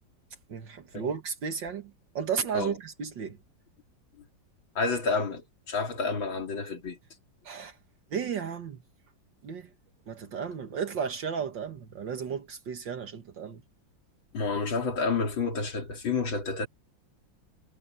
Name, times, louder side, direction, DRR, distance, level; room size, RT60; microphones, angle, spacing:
voice 1, 0.5-3.4 7.4-7.8 8.1-8.8 9.4-9.7 10.1-13.6, right 6 dB, 70° right, 2.2 m, -34 dB
voice 2, 4.8-7.0 14.3-16.7, left 4 dB, 85° left, 3.8 m, -29 dB
omnidirectional pair, 2.1 m